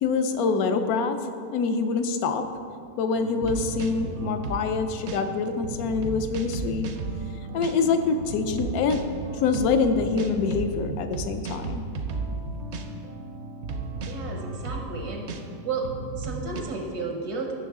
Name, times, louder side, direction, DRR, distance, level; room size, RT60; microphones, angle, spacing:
voice 1, 0.0-1.2 1.5-2.4 3.0-6.9 7.5-9.0 9.3-11.8, left 5 dB, 70° left, 8 dB, 1.0 m, -25 dB
sound 1, 3.1-16.6, right 3 dB, 60° right, 0.7 m, -34 dB
voice 2, 14.0-15.3 15.6-15.9 16.2-17.5, right 4 dB, 80° right, 2 dB, 1.4 m, -32 dB
9.9 x 6.1 x 3.6 m, 2.3 s
omnidirectional pair, 1.7 m